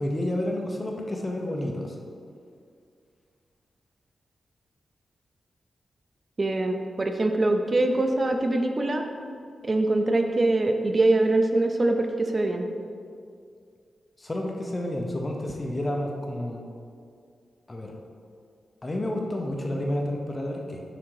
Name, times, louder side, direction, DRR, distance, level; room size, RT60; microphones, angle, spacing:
voice 1, 0.0-2.0 14.2-16.6 17.7-17.9 18.8-20.8, left 1 dB, 25° left, 1 dB, 0.6 m, -30 dB
voice 2, 6.4-9.0 9.6-12.7, right 2 dB, 30° right, 5 dB, 0.4 m, -23 dB
5.9 x 3.8 x 4.7 m, 2.3 s
wide cardioid pair, 145°, 0 cm